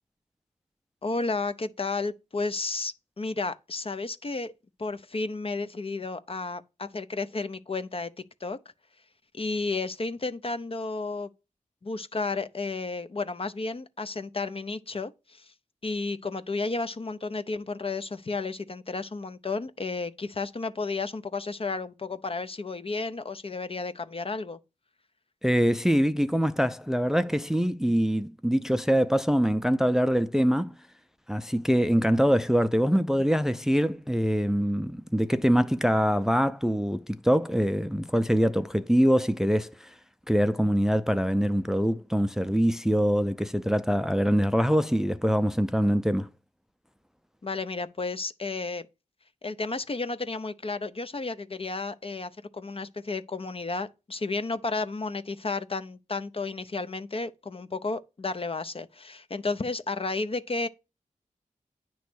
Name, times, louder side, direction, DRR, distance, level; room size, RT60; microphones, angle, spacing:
voice 1, 1.0-4.5 4.8-8.1 8.4-8.6 9.3-11.3 11.8-15.5 15.8-24.6 47.4-48.8 49.4-60.7, left 3 dB, 40° left, 0.6 m, -32 dB
voice 2, 25.4-30.7 31.3-39.9 40.3-46.3, equal, 5° right, 0.4 m, -24 dB
9.3 x 3.1 x 6.1 m
cardioid pair, 50°, 14 cm